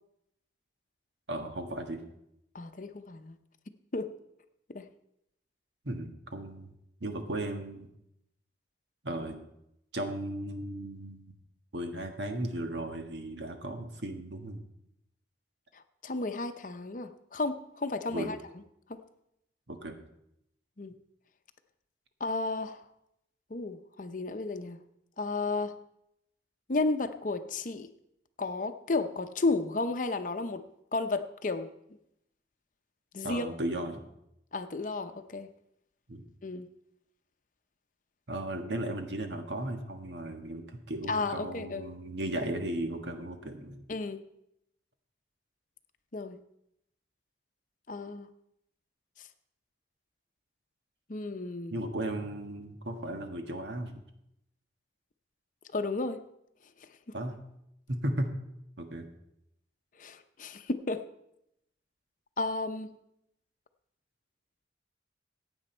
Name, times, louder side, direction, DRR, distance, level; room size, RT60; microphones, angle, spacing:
voice 1, 1.3-2.0 5.8-6.7 7.0-7.9 9.0-9.4 9.9-11.2 11.7-14.6 18.1-18.3 19.7-19.9 33.2-34.0 36.1-36.2 38.3-43.8 51.7-53.9 57.1-57.4 57.9-58.3 58.8-59.1, right 1 dB, 85° right, 5 dB, 1.5 m, -35 dB
voice 2, 2.5-3.4 3.9-4.1 4.7-4.8 15.7-18.4 18.9-19.0 20.8-20.9 22.2-22.8 23.5-24.8 25.2-25.7 26.7-27.9 28.4-30.6 30.9-31.7 33.1-33.5 34.5-35.5 36.4-36.7 41.1-41.9 43.9-44.2 46.1-46.4 47.9-48.3 51.1-51.8 55.7-56.2 57.1-57.2 60.0-61.0 62.4-62.9, left 3 dB, 45° left, 9 dB, 0.7 m, -33 dB
15.5 x 8.9 x 4.4 m, 0.80 s
head